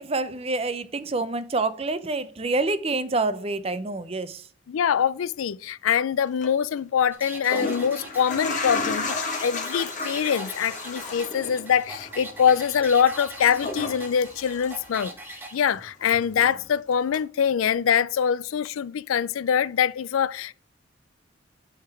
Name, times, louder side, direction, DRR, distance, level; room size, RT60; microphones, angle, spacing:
voice 1, 0.0-4.4, right 3 dB, 30° right, 0.5 m, -27 dB
voice 2, 4.7-9.1 9.4-15.1 15.5-20.5, left 8 dB, 90° left, 0.4 m, -24 dB
Omni Ambiental Bathroom, 6.3-6.5 7.3-15.3 15.6-16.7 17.1-17.2, left 3 dB, 40° left, 1.3 m, -33 dB
sound 1, 7.1-15.5, right 1 dB, 10° right, 1.0 m, -41 dB
9.7 x 3.7 x 4.6 m
head